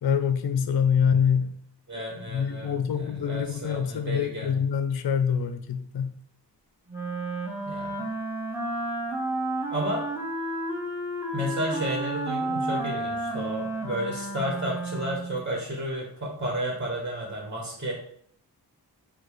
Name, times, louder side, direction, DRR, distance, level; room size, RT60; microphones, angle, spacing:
voice 1, 0.0-1.5 1.9-6.2, left 7 dB, 60° left, 9 dB, 0.5 m, -25 dB
voice 2, 1.9-4.5 7.6-8.1 9.7-10.0 11.3-17.9, right 1 dB, 25° right, -2 dB, 1.4 m, -32 dB
Wind instrument woodwind instrument, 6.9-15.4, right 1 dB, 5° right, 1.1 m, -31 dB
4.6 x 2.3 x 4.6 m, 0.66 s
cardioid pair, 55°, 43 cm